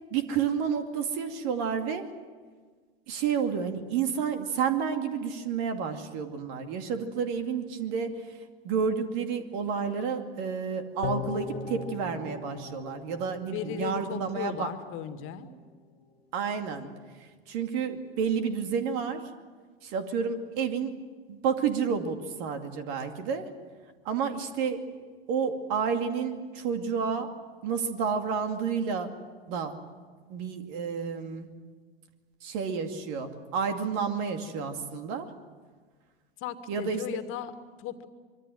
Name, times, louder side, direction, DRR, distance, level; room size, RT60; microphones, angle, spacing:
voice 1, 0.1-2.1 3.1-8.2 8.6-14.7 16.3-16.9 17.5-19.2 19.8-21.0 21.3-23.5 24.0-24.9 25.3-27.3 27.6-29.2 29.5-29.8 30.3-31.5 32.4-35.3 36.7-37.0, right 6 dB, 55° right, 6 dB, 2.5 m, -30 dB
sound 1, 11.0-14.4 14.7-14.8, left 6 dB, 75° left, 1.6 m, -38 dB
voice 2, 13.5-15.5 36.4-38.1, left 10 dB, 40° left, 9 dB, 2.1 m, -36 dB
24.5 x 23.5 x 7.8 m, 1.5 s
figure-of-eight pair, 90°, 31 cm